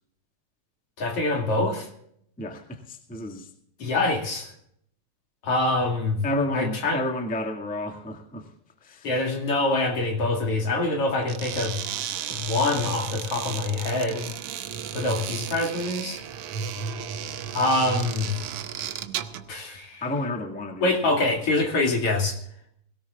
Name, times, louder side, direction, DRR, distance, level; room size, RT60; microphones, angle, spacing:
voice 1, 1.0-1.9 3.8-4.5 5.4-6.2 6.5-7.0 9.0-11.8 12.3-14.2 14.9-16.2 17.5-18.3 19.5-20.0 20.8-22.4, left 2 dB, 55° left, 2 dB, 3.3 m, -25 dB
voice 2, 2.4-3.5 6.2-8.5 8.8-9.1 20.0-21.4, left 1 dB, 5° left, 3 dB, 1.1 m, -31 dB
sound 1, 11.2-19.5, right 8 dB, 70° right, 1.4 m, -33 dB
21.5 x 18.0 x 2.4 m, 0.69 s
omnidirectional pair, 3.3 m